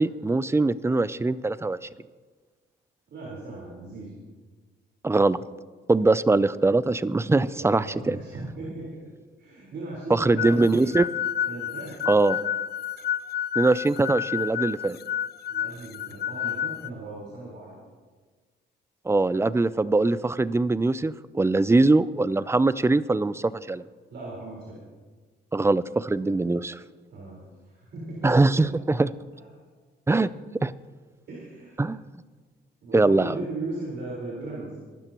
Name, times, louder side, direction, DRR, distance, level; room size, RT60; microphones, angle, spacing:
voice 1, 0.0-1.8 5.0-5.4 5.9-8.2 10.1-11.0 12.1-12.4 13.6-15.0 19.1-23.8 25.5-26.8 28.2-29.1 30.1-30.3 30.6-30.7 31.8-32.0 32.9-33.3, right 2 dB, 15° right, 16 dB, 0.5 m, -22 dB
voice 2, 3.1-4.1 7.5-9.0 9.4-10.9 11.4-12.2 15.5-17.7 24.1-24.8 27.1-28.4 28.7-28.8 29.3-29.4 31.3-31.8 32.8-34.8, right 2 dB, 60° right, -6 dB, 4.5 m, -37 dB
sound 1, 10.4-16.9, left 10 dB, 55° left, 0.5 m, -30 dB
23.0 x 13.0 x 3.0 m, 1.4 s
cardioid pair, 90°, 20 cm